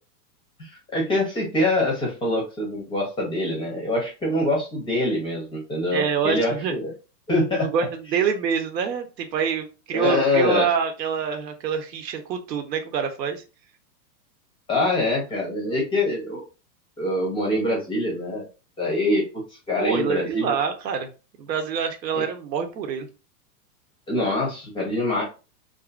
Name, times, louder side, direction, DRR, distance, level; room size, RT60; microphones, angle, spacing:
voice 1, 0.6-6.9 7.3-7.7 9.9-10.7 14.7-16.4 17.0-18.5 18.8-20.5 22.1-22.2 24.1-25.2, left 1 dB, 10° left, -1 dB, 0.5 m, -24 dB
voice 2, 5.9-6.7 7.6-13.4 19.8-21.1 21.4-23.1, right 7 dB, 80° right, 7 dB, 0.8 m, -26 dB
2.6 x 2.5 x 2.3 m, 0.31 s
hypercardioid pair, 130°, 49 cm